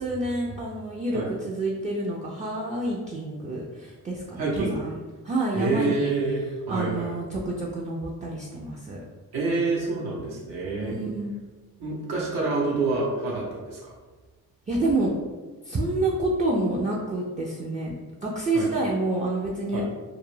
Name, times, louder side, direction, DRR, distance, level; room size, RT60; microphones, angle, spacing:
voice 1, 0.0-6.1 6.7-9.0 10.8-11.3 14.7-15.1 15.6-17.9 18.2-19.8, right 2 dB, 20° right, -3 dB, 0.3 m, -28 dB
voice 2, 4.4-4.8 5.5-7.1 9.3-11.0 11.8-13.9 18.5-18.7 19.7-19.8, right 3 dB, 85° right, -5 dB, 0.8 m, -27 dB
2.3 x 2.1 x 3.0 m, 1.3 s
cardioid pair, 75°, 37 cm